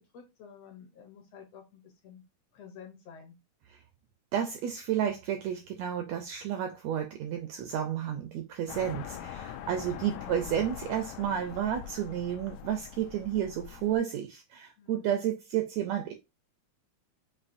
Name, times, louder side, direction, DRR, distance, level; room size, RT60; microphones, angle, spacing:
voice 1, 0.1-2.2 2.5-3.4 9.1-9.4 10.0-10.4 14.8-15.2, left 7 dB, 70° left, 1.6 m, -50 dB
voice 2, 4.3-16.1, right 10 dB, 80° right, 1.5 m, -31 dB
sound 1, 8.7-14.0, left 9 dB, 85° left, 2.1 m, -43 dB
7.1 x 2.6 x 2.5 m
omnidirectional pair, 3.6 m